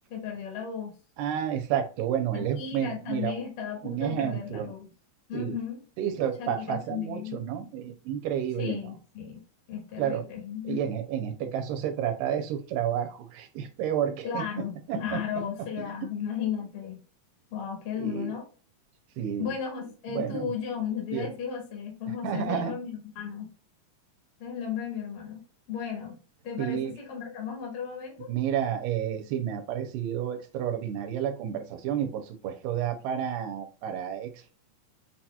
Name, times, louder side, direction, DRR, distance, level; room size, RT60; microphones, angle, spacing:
voice 1, 0.1-0.9 2.3-4.9 5.3-5.8 6.4-7.4 8.6-9.4 9.7-10.8 14.2-17.0 17.5-18.5 19.4-23.5 24.4-25.4 25.7-26.2 26.4-28.3, left 7 dB, 50° left, 0 dB, 1.8 m, -35 dB
voice 2, 1.2-3.4 3.8-4.7 5.3-5.5 6.0-8.9 10.0-10.2 10.6-15.9 18.0-18.4 19.2-19.5 20.1-20.5 21.1-21.3 22.2-22.7 26.6-26.9 28.3-34.5, right 9 dB, 85° right, 5 dB, 2.2 m, -31 dB
6.2 x 2.8 x 2.3 m, 0.36 s
omnidirectional pair, 3.8 m